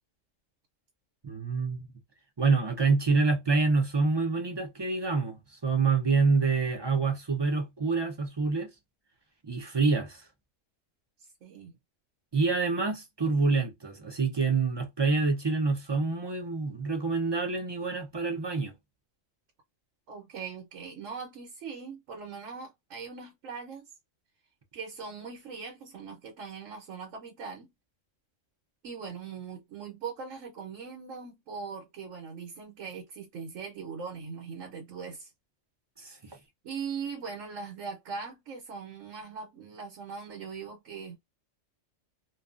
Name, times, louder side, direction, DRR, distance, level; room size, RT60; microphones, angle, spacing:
voice 1, 1.2-1.9 2.4-8.7 9.4-10.2 12.3-18.7 36.0-36.4, right 4 dB, 35° right, 0.4 m, -27 dB
voice 2, 11.2-11.8 20.1-23.9 24.7-27.7 28.8-35.3 36.6-41.2, right 5 dB, 80° right, 1.2 m, -40 dB
2.6 x 2.3 x 2.4 m
omnidirectional pair, 1.3 m